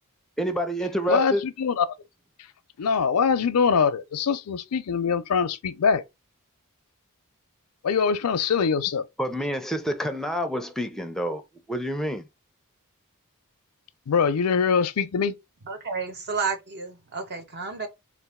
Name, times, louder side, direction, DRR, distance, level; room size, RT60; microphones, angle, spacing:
voice 1, 0.4-1.4 9.2-11.4 11.7-12.3, equal, ahead, 0.5 m, -28 dB
voice 2, 1.1-1.8 2.8-6.0 7.8-9.0 14.1-15.4, left 6 dB, 85° left, 0.5 m, -23 dB
voice 3, 15.6-17.9, right 5 dB, 50° right, 0.8 m, -31 dB
3.9 x 2.5 x 3.5 m
head